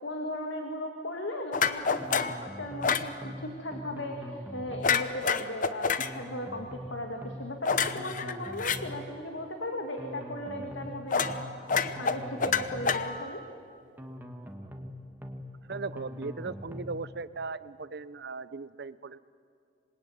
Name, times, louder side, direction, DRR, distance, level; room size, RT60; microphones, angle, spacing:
voice 1, 0.0-11.5 12.0-13.4, left 1 dB, 85° left, 3 dB, 2.2 m, -37 dB
sound 1, 1.5-2.4 2.8-3.1 4.8-6.1 7.6-8.8 11.1-11.4 11.7-13.4, left 6 dB, 45° left, 0.9 m, -27 dB
sound 2, 2.0-2.9 3.2-3.4 3.7-5.0 6.0-6.9 7.2-7.4 7.7-9.0 10.0-10.9 11.2-11.4 11.7-13.0 14.0-14.9 15.2-15.4 15.7-17.0, equal, 10° right, 1.7 m, -42 dB
voice 2, 15.7-19.2, right 4 dB, 65° right, 16 dB, 0.7 m, -38 dB
26.5 x 21.0 x 9.3 m, 2.4 s
head